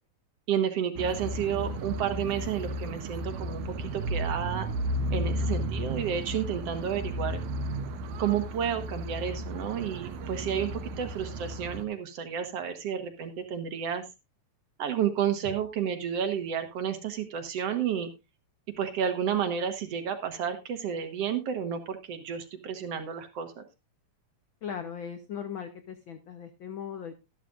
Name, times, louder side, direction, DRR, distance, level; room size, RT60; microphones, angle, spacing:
voice 1, 0.5-4.7 5.1-7.4 8.2-14.0 14.8-18.1 18.8-23.6, right 8 dB, 60° right, 8 dB, 2.1 m, -31 dB
sound 1, 1.0-11.8, right 1 dB, 85° right, 2.5 m, -33 dB
voice 2, 24.6-27.2, left 7 dB, 75° left, 8 dB, 1.1 m, -38 dB
12.5 x 12.5 x 2.5 m, 0.24 s
omnidirectional pair, 3.5 m